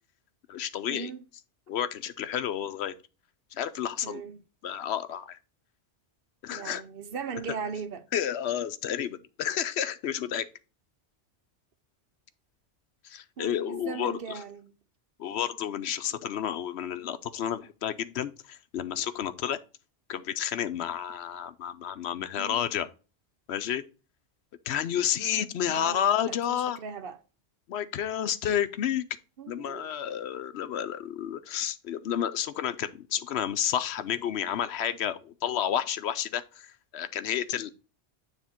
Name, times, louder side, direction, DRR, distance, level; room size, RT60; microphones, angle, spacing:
voice 1, 0.5-1.1 1.7-2.9 3.5-4.2 4.6-5.4 6.4-6.8 8.1-10.5 13.0-14.4 15.2-19.6 20.1-22.9 23.5-23.8 24.7-26.8 27.7-29.1 29.5-37.7, left 9 dB, 70° left, 0.8 m, -31 dB
voice 2, 4.0-4.4 6.5-8.1 13.4-14.7 22.4-22.6 25.7-27.2 29.4-29.9, right 5 dB, 60° right, 0.9 m, -38 dB
9.5 x 3.5 x 4.3 m
omnidirectional pair, 1.2 m